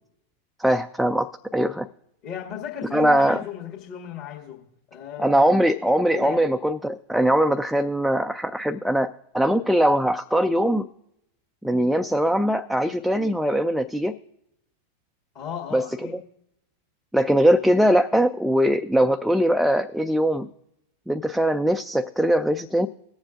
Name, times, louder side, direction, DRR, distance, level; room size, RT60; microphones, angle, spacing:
voice 1, 0.6-1.9 2.9-3.4 5.2-10.9 11.6-14.1 15.7-15.8 16.1-16.2 17.1-20.5 21.1-22.9, equal, ahead, 6 dB, 0.3 m, -21 dB
voice 2, 2.2-4.6 4.9-5.6 6.1-6.5 15.3-16.2, left 9 dB, 40° left, -3 dB, 1.8 m, -35 dB
21.5 x 7.3 x 2.5 m, 0.80 s
figure-of-eight pair, 90°, 0 cm